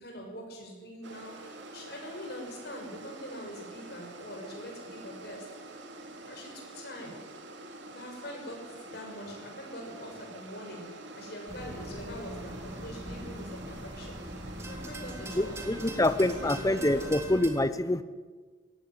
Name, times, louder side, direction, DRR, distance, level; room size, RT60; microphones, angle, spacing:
voice 1, 0.0-5.4 6.2-7.2 7.9-10.9 11.1-14.2 14.6-15.5 16.2-17.1, equal, 55° left, 1 dB, 6.4 m, -43 dB
sound 1, 1.0-17.1, right 2 dB, 70° right, 2.5 m, -47 dB
sound 2, 11.5-17.5, right 1 dB, 15° right, 2.2 m, -42 dB
voice 2, 15.3-18.0, left 1 dB, 20° left, 13 dB, 0.7 m, -26 dB
17.0 x 15.5 x 9.9 m, 1.5 s
head